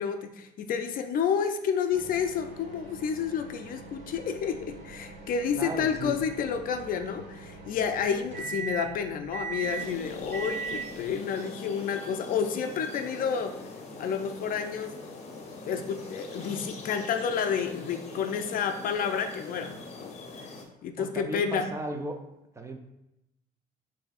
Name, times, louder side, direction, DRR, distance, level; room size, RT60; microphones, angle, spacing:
voice 1, 0.0-13.6 14.0-15.0 15.7-20.1 20.8-21.7, left 7 dB, 55° left, 7 dB, 0.4 m, -30 dB
Microwave oven, 1.9-11.1, right 5 dB, 45° right, 1.1 m, -40 dB
voice 2, 5.5-6.2 21.0-22.1 22.5-22.8, right 2 dB, 15° right, 4 dB, 0.5 m, -35 dB
sound 1, 9.6-20.6, left 3 dB, 40° left, 0.8 m, -43 dB
6.1 x 2.7 x 2.4 m, 0.89 s
cardioid pair, 110°, 17 cm